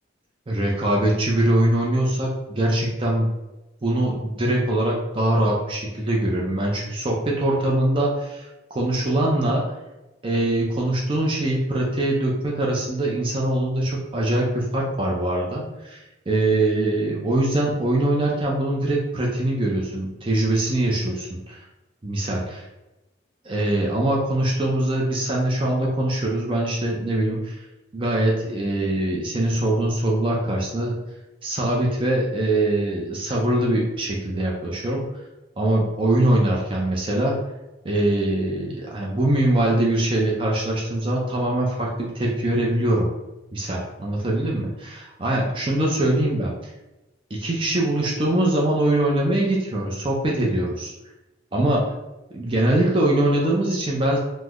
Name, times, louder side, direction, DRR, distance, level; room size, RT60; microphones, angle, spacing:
voice 1, 0.5-3.3 3.8-9.6 10.2-21.6 22.0-22.6 23.4-27.6 27.9-31.0 31.4-35.0 35.6-37.4 37.8-43.1 43.5-46.5 47.3-50.9 51.5-51.8 52.3-54.2, right 1 dB, 30° right, -3 dB, 0.5 m, -23 dB
3.1 x 2.0 x 3.6 m, 1.0 s
head